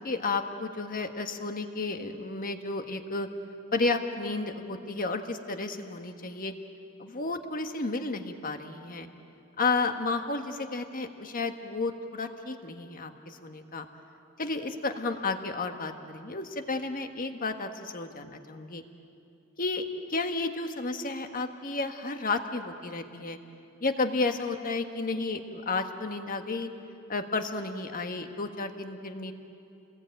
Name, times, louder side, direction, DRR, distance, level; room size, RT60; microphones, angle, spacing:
voice 1, 0.0-3.3 3.7-6.5 7.0-9.1 9.6-13.8 14.4-18.8 19.6-19.8 20.1-23.4 23.8-26.7 27.1-29.3, left 3 dB, 40° left, 6 dB, 1.5 m, -32 dB
29.0 x 20.5 x 9.1 m, 2.7 s
head